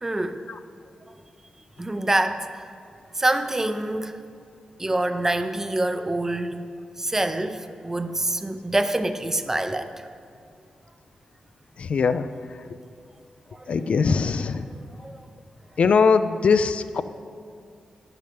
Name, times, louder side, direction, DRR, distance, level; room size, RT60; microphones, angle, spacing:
voice 1, 0.0-0.4 1.8-2.7 3.2-4.2 4.8-6.6 7.0-9.9 13.6-13.7 15.0-15.2, right 1 dB, 20° right, 9 dB, 0.6 m, -26 dB
voice 2, 11.8-12.3 13.7-14.7 15.8-17.0, left 5 dB, 60° left, 12 dB, 0.4 m, -21 dB
12.0 x 10.5 x 3.4 m, 2.3 s
cardioid pair, 90°, 2 cm